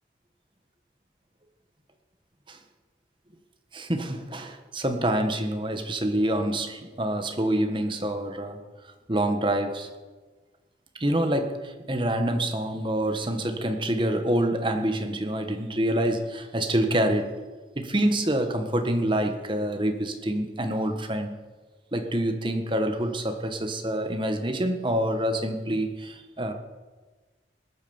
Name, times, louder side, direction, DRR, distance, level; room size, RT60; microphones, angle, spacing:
voice 1, 3.7-8.6 9.1-9.9 11.0-17.3 17.7-21.4 21.9-26.5, right 1 dB, 25° right, 6 dB, 1.5 m, -26 dB
19.5 x 9.2 x 7.2 m, 1.3 s
head